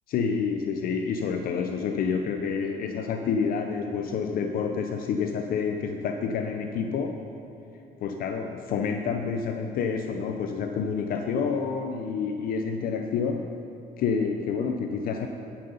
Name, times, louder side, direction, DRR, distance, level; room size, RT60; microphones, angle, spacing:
voice 1, 0.1-7.2 8.0-13.6 14.0-15.3, left 5 dB, 60° left, 5 dB, 0.5 m, -28 dB
11.5 x 5.5 x 5.4 m, 2.7 s
cardioid pair, 110°, 17 cm